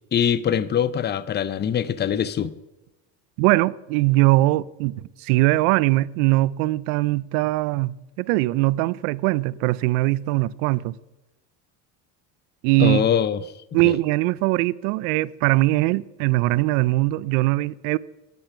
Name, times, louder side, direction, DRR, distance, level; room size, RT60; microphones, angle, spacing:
voice 1, 0.1-2.5 12.8-13.4 13.8-14.0, left 8 dB, 25° left, 0.5 m, -23 dB
voice 2, 3.4-11.0 12.6-13.1 13.7-18.0, right 19 dB, 75° right, 0.5 m, -21 dB
10.5 x 8.7 x 5.6 m
supercardioid pair, 90°, 45 cm